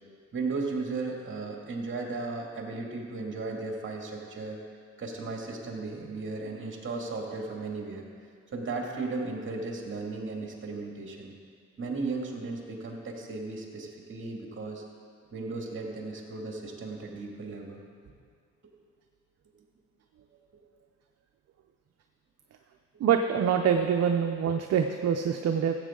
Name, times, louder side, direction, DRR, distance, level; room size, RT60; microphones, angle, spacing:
voice 1, 0.3-4.6 5.0-8.1 8.5-11.3 11.8-14.8 15.3-17.8, right 3 dB, 40° right, 0 dB, 2.2 m, -35 dB
voice 2, 23.0-25.8, right 7 dB, 55° right, 5 dB, 0.6 m, -25 dB
14.5 x 8.2 x 3.8 m, 2.1 s
cardioid pair, 90°, 30 cm